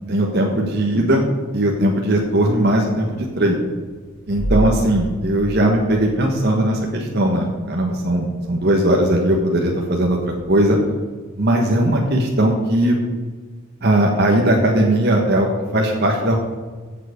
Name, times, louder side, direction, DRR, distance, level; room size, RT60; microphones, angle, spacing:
voice 1, 0.1-1.3 1.5-3.6 4.3-10.8 11.4-13.0 13.8-16.4, right 1 dB, 50° right, 0 dB, 1.4 m, -18 dB
sound 1, 2.0-2.7 4.2-6.8 7.3-7.4 10.4-10.6, equal, 60° left, 3.6 m, -28 dB
15.0 x 7.6 x 5.1 m, 1.4 s
head